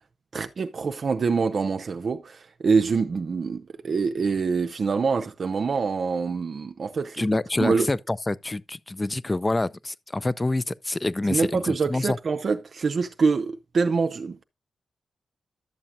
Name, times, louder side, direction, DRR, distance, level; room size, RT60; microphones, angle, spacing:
voice 1, 0.3-7.2 7.6-7.9 11.3-14.4, right 5 dB, 55° right, 0.6 m, -25 dB
voice 2, 7.2-12.2, left 2 dB, 20° left, 0.5 m, -27 dB
12.0 x 7.3 x 2.6 m
cardioid pair, 80°, 0 cm